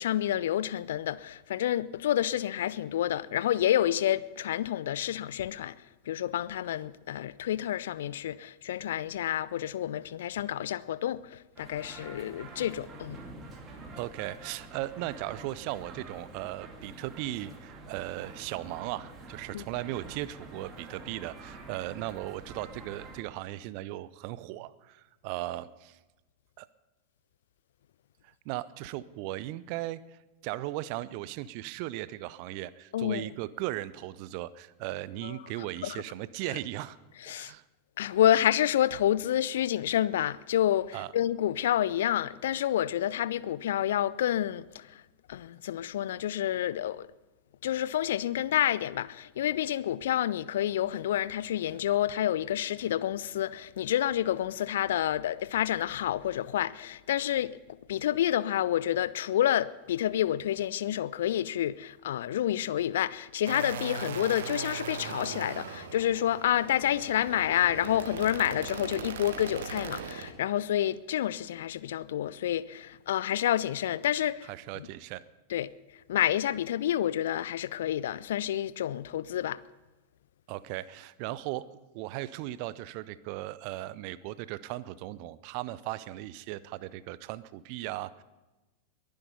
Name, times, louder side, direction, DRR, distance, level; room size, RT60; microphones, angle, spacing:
voice 1, 0.0-5.8 6.1-13.2 19.5-19.6 32.9-33.3 35.2-35.3 35.8-36.0 37.2-37.5 38.0-45.0 45.3-47.1 47.6-57.6 57.9-74.5 74.8-74.9 75.5-75.7 76.1-79.6, left 11 dB, 60° left, 0.5 m, -29 dB
sound 1, 11.6-23.2, right 2 dB, 25° right, 2.4 m, -47 dB
voice 2, 13.9-26.0 26.6-26.7 28.2-37.0 37.3-37.6 40.9-41.1 74.5-75.2 80.5-81.7 81.9-88.2, right 16 dB, 45° right, 0.6 m, -37 dB
sound 2, 63.4-70.3, right 6 dB, 60° right, 1.5 m, -39 dB
22.0 x 10.5 x 5.4 m
figure-of-eight pair, 90°, 0 cm